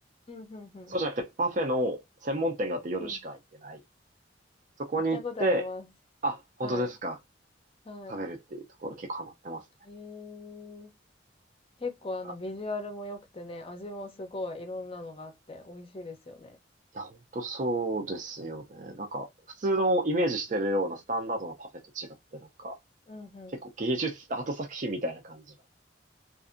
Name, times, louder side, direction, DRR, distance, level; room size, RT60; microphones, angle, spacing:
voice 1, 0.3-1.0 3.0-3.2 5.1-5.9 6.6-6.9 7.8-8.3 9.8-10.9 11.8-16.6 23.1-23.6, left 2 dB, 30° left, 0.6 m, -39 dB
voice 2, 0.9-3.8 4.8-5.7 6.2-7.2 8.1-9.6 16.9-19.3 19.6-21.7 21.9-22.7 23.8-25.4, right 1 dB, 40° right, 0.5 m, -31 dB
2.6 x 2.4 x 2.4 m
head